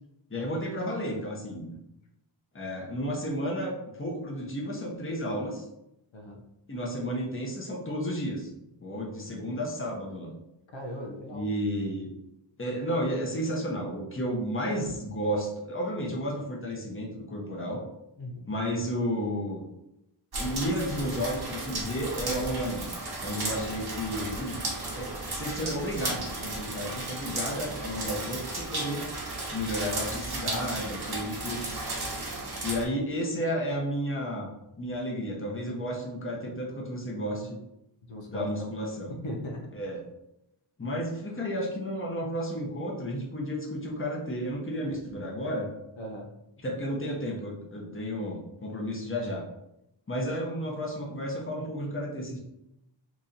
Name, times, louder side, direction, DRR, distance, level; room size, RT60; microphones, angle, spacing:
voice 1, 0.3-1.7 2.5-5.6 6.7-8.5 8.8-10.3 11.3-12.1 12.6-17.8 18.5-19.6 20.4-22.8 23.2-29.1 29.5-31.8 32.6-34.5 34.8-37.6 38.3-39.1 39.7-40.0 40.8-45.7 46.6-49.5 50.1-52.4, equal, 25° left, -2 dB, 1.0 m, -32 dB
voice 2, 10.7-11.5 18.2-18.5 38.1-38.7 39.1-39.8 46.0-46.3, equal, 80° left, 1 dB, 0.7 m, -38 dB
sound 1, 20.3-32.8, right 2 dB, 55° right, 1.0 m, -34 dB
3.0 x 2.7 x 3.9 m, 0.85 s
wide cardioid pair, 65°, 45 cm